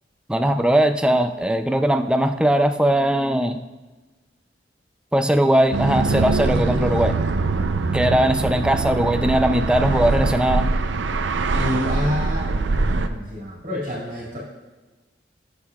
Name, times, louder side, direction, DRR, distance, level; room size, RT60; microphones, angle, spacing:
voice 1, 0.3-3.6 5.1-7.2 7.9-10.7, right 1 dB, 5° right, 7 dB, 0.4 m, -19 dB
sound 1, 5.7-13.1, right 3 dB, 80° right, 0.5 m, -23 dB
voice 2, 11.5-14.4, left 1 dB, 45° right, -5 dB, 2.2 m, -28 dB
18.0 x 6.6 x 2.3 m, 1.2 s
head